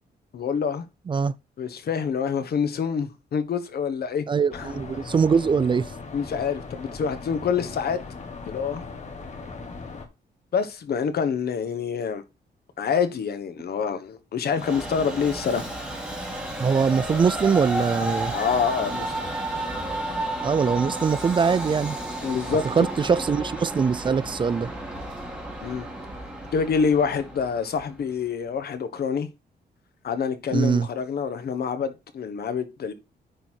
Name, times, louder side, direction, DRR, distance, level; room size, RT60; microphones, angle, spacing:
voice 1, 0.3-0.8 1.6-4.2 4.5-4.7 6.1-8.0 8.5-8.8 10.5-12.2 12.8-15.7 18.3-19.2 22.2-22.6 25.6-25.9 26.5-29.3 30.0-32.9, left 6 dB, 60° left, 1.2 m, -26 dB
voice 2, 4.3-5.9 16.6-18.3 20.4-22.0 22.6-24.7 30.5-30.9, right 6 dB, 25° right, 0.4 m, -22 dB
sound 1, 4.5-10.1, left 4 dB, 40° left, 1.5 m, -39 dB
Train, 14.5-28.0, right 1 dB, 5° right, 2.4 m, -32 dB
10.0 x 4.2 x 4.5 m
wide cardioid pair, 150°, 18 cm